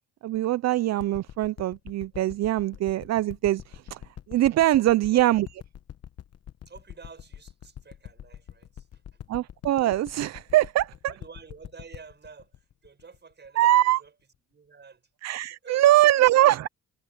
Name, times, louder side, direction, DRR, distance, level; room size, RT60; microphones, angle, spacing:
voice 1, 0.2-4.0 4.3-5.5 9.3-11.1 13.6-14.0 15.2-16.7, right 14 dB, 60° right, 0.5 m, -22 dB
sound 1, 1.0-13.8 14.3-14.4, left 10 dB, 55° left, 1.1 m, -44 dB
voice 2, 4.8-5.3 6.7-9.2 11.1-14.1 14.5-15.1 15.6-16.0 16.4-16.7, right 5 dB, 35° right, 5.7 m, -49 dB
cardioid pair, 90°, 30 cm